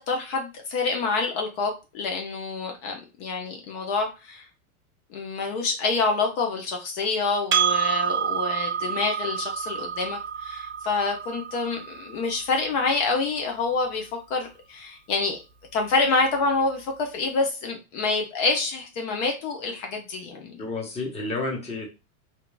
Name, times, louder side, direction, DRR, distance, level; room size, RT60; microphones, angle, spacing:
voice 1, 0.0-4.4 5.1-15.4 15.7-20.6, left 3 dB, 55° left, 2 dB, 0.8 m, -27 dB
Percussion, 7.5-12.3, right 7 dB, 25° right, 0.6 m, -28 dB
voice 2, 20.3-21.9, left 3 dB, 15° left, -1 dB, 0.9 m, -31 dB
2.9 x 2.6 x 2.2 m, 0.29 s
hypercardioid pair, 105°, 45 cm